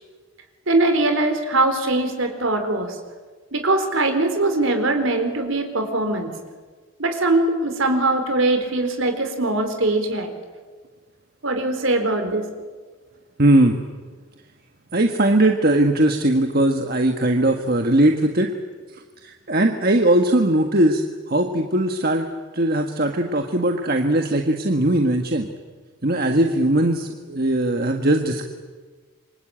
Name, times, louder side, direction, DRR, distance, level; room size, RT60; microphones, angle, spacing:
voice 1, 0.7-3.0 3.5-6.3 7.0-10.3 11.4-12.5, right 2 dB, 65° right, 6 dB, 4.2 m, -21 dB
voice 2, 13.4-13.8 14.9-18.5 18.9-21.0 21.3-25.5 26.0-28.4, right 1 dB, 45° right, 4 dB, 1.5 m, -19 dB
27.5 x 24.5 x 8.9 m, 1.4 s
head